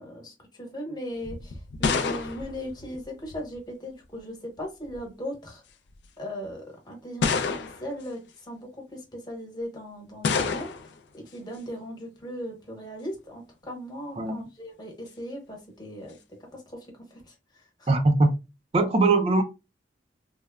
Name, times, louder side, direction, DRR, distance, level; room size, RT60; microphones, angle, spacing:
voice 1, 0.0-5.6 6.2-10.7 11.1-16.2 16.5-16.6 17.0-17.9, equal, 25° left, 1.0 m, -38 dB
sound 1, 1.2-3.6 4.6-5.1 5.9-6.0 7.2-8.0 10.2-11.0, left 5 dB, 75° left, 0.4 m, -28 dB
voice 2, 17.9-18.3 18.7-19.4, right 3 dB, 35° right, 0.4 m, -21 dB
3.1 x 2.0 x 2.3 m
head